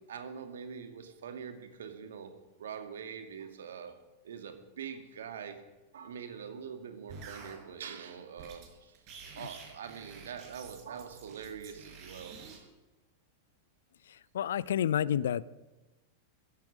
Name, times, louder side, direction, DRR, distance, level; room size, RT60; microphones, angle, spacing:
voice 1, 0.0-2.3 2.6-4.0 4.2-5.6 5.9-12.4, right 7 dB, 65° right, 7 dB, 2.0 m, -44 dB
sound 1, 7.1-7.6 8.4-8.7 8.9-12.6, right 5 dB, 45° right, 5.4 m, -49 dB
voice 2, 14.1-15.4, left 10 dB, 60° left, 21 dB, 0.4 m, -30 dB
15.5 x 13.5 x 6.3 m, 1.1 s
figure-of-eight pair, 90°, 0 cm